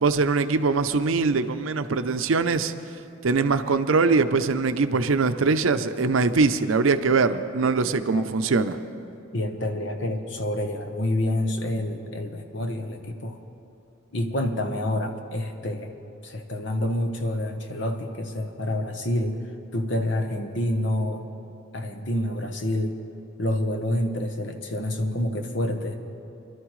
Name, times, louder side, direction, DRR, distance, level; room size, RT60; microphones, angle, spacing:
voice 1, 0.0-2.7 3.2-8.8, right 4 dB, 80° right, 10 dB, 0.6 m, -22 dB
voice 2, 9.3-13.4 14.1-15.9 16.2-19.4 19.7-21.3 21.7-23.0 23.4-26.0, left 1 dB, 60° left, 5 dB, 1.0 m, -28 dB
25.0 x 12.0 x 3.2 m, 2.8 s
head